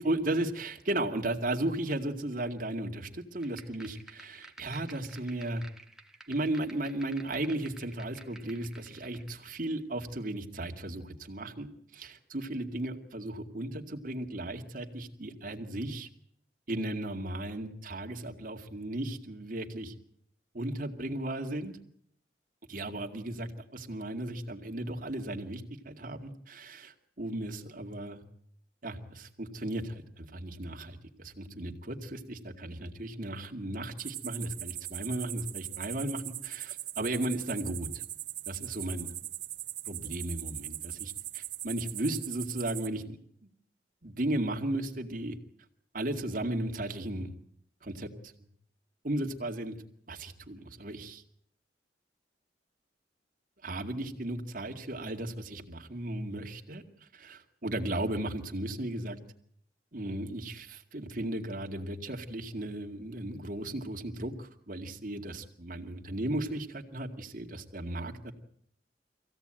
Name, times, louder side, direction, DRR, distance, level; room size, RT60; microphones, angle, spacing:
voice 1, 0.0-5.6 6.3-16.1 16.7-19.9 20.5-21.8 22.7-28.2 28.8-38.0 38.5-39.1 39.9-43.2 43.4-43.5 44.0-45.4 45.9-47.3 47.8-48.1 49.0-49.8 50.1-51.2 53.6-59.2 59.9-68.3, right 1 dB, 50° right, 3 dB, 2.3 m, -35 dB
sound 1, 3.4-9.4, right 2 dB, 5° right, 1.5 m, -53 dB
sound 2, 34.0-42.9, right 14 dB, 90° right, 1.8 m, -40 dB
24.0 x 16.5 x 9.0 m, 0.70 s
head